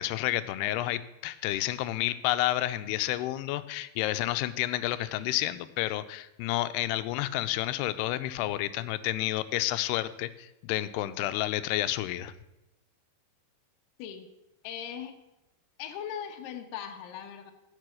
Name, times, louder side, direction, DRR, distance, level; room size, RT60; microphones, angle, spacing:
voice 1, 0.0-12.3, left 15 dB, 85° left, 13 dB, 2.6 m, -30 dB
voice 2, 14.6-15.2 15.8-17.5, left 9 dB, 70° left, 4 dB, 2.4 m, -39 dB
15.0 x 6.7 x 6.4 m, 0.94 s
omnidirectional pair, 4.7 m